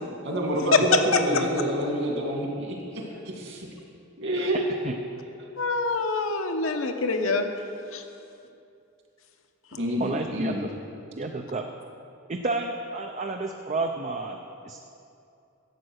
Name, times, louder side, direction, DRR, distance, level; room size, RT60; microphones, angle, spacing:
voice 1, 0.2-3.7 4.2-4.6 5.4-5.5 9.8-10.6, equal, 60° right, -1 dB, 2.4 m, -28 dB
voice 2, 0.9-1.4 5.6-7.5 7.9-8.0, left 3 dB, 70° left, 5 dB, 1.0 m, -25 dB
voice 3, 10.0-10.7 11.2-11.6 12.3-14.8, right 3 dB, 35° right, 3 dB, 0.5 m, -31 dB
12.0 x 8.5 x 6.4 m, 2.6 s
head